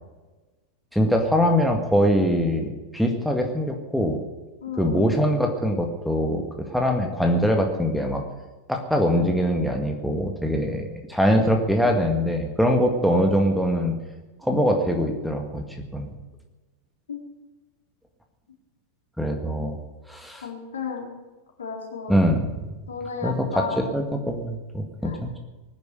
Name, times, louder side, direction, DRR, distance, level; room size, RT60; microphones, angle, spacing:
voice 1, 0.9-4.2 4.8-8.2 8.7-13.9 14.4-15.6 15.9-16.1 19.2-19.8 20.1-20.4 22.1-22.4 23.2-23.5 23.9-25.4, equal, ahead, 2 dB, 1.9 m, -23 dB
voice 2, 4.6-5.0 17.1-17.2 20.4-21.1 21.6-22.1 22.9-24.0 25.0-25.2, left 5 dB, 70° left, 1 dB, 3.5 m, -33 dB
19.5 x 10.5 x 6.8 m, 1.2 s
figure-of-eight pair, 90°, 0 cm